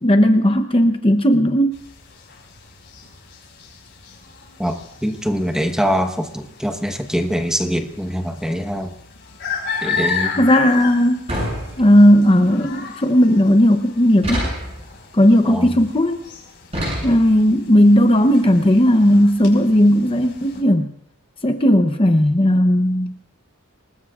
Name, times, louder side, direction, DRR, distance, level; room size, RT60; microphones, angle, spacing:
voice 1, 0.0-1.8 10.4-11.3 11.8-14.4 15.1-16.2 17.0-20.9 21.4-23.1, equal, 25° left, 6 dB, 0.8 m, -15 dB
sound 1, 1.7-20.6, left 5 dB, 60° left, 5.0 m, -34 dB
voice 2, 4.6-8.9 9.8-10.5 15.4-15.7, equal, 5° right, 6 dB, 1.1 m, -23 dB
sound 2, 11.3-12.2 14.2-14.9 16.7-17.5, equal, 30° right, 7.8 m, -26 dB
27.5 x 19.5 x 2.4 m, 0.76 s
head